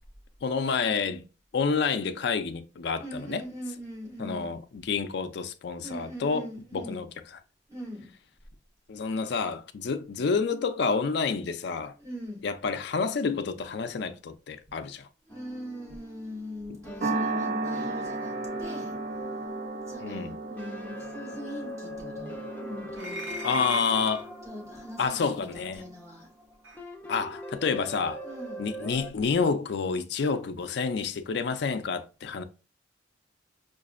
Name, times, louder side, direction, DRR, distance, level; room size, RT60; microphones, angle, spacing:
voice 1, 0.4-1.2 1.5-3.4 4.2-7.1 8.9-11.9 12.4-15.1 20.0-20.3 23.4-24.3 25.0-25.8 27.1-28.2 28.6-32.4, left 5 dB, 60° left, 0.4 m, -29 dB
voice 2, 3.0-4.6 5.8-7.1 7.7-8.2 12.0-12.5 15.3-19.0 19.9-23.4 24.4-26.3 28.2-28.7, equal, 15° right, 1.4 m, -41 dB
sound 1, 15.3-29.1, equal, 10° left, 0.5 m, -42 dB
sound 2, 17.0-25.5, right 2 dB, 45° right, 0.4 m, -35 dB
sound 3, 22.9-24.3 25.6-25.7 26.6-26.8, equal, 90° right, 0.9 m, -38 dB
4.7 x 2.5 x 2.4 m
head